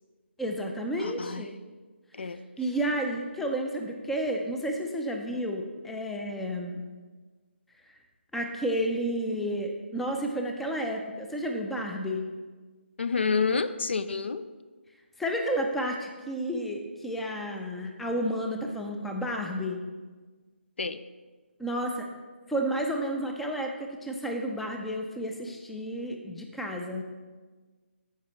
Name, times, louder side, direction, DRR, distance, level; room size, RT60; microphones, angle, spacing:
voice 1, 0.4-1.5 2.2-2.3 2.6-6.8 8.3-12.2 15.2-19.8 21.6-22.1 22.5-27.0, equal, ahead, 2 dB, 0.4 m, -31 dB
voice 2, 1.0-1.5 2.1-2.4 13.0-14.5 20.8-21.0, left 5 dB, 65° left, 13 dB, 0.4 m, -29 dB
13.5 x 5.0 x 3.1 m, 1.4 s
figure-of-eight pair, 150°, 7 cm